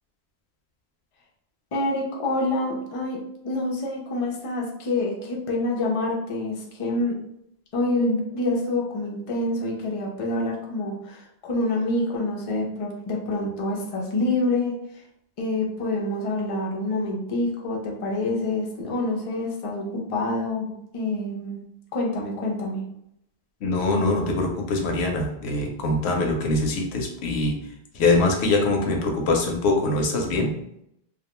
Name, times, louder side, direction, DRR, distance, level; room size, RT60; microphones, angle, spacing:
voice 1, 1.7-3.2 3.4-7.2 7.7-14.8 15.4-21.6 21.9-22.8, left 2 dB, 45° left, -1 dB, 0.5 m, -27 dB
voice 2, 23.6-27.6 27.9-30.5, left 2 dB, 85° left, 2 dB, 0.9 m, -23 dB
2.3 x 2.2 x 2.9 m, 0.76 s
omnidirectional pair, 1.1 m